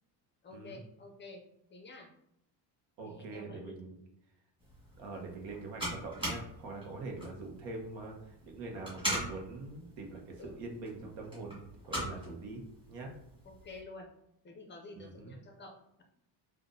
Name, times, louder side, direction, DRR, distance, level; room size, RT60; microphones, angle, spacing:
voice 1, 0.4-1.4 1.7-2.1 3.0-3.7 10.4-10.6 13.4-14.1 14.4-16.0, left 3 dB, 25° left, 3 dB, 0.4 m, -50 dB
voice 2, 3.0-4.0 5.0-11.6 11.9-12.6 12.9-13.1 14.9-15.3, right 3 dB, 90° right, 1 dB, 1.1 m, -43 dB
sound 1, 4.6-13.8, right 1 dB, 10° right, 1.5 m, -42 dB
5.8 x 2.5 x 2.6 m, 0.78 s
cardioid pair, 160°, 44 cm